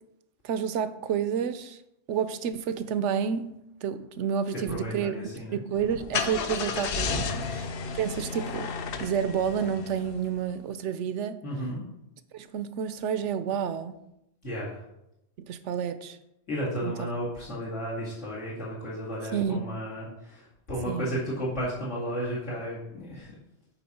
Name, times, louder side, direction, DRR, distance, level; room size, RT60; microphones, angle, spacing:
voice 1, 0.4-1.8 2.1-3.5 3.8-5.2 5.5-7.7 7.9-8.7 9.0-11.4 12.3-13.9 15.4-16.2 16.8-16.9 19.3-19.6 20.9-21.1, right 7 dB, 75° right, 0.9 m, -29 dB
voice 2, 4.5-5.6 7.1-7.5 11.4-11.8 14.4-14.8 16.5-23.3, equal, 75° left, 2.7 m, -33 dB
Car / Engine starting, 5.7-10.4, left 5 dB, 55° left, 0.7 m, -33 dB
10.0 x 4.9 x 4.2 m
omnidirectional pair, 1.3 m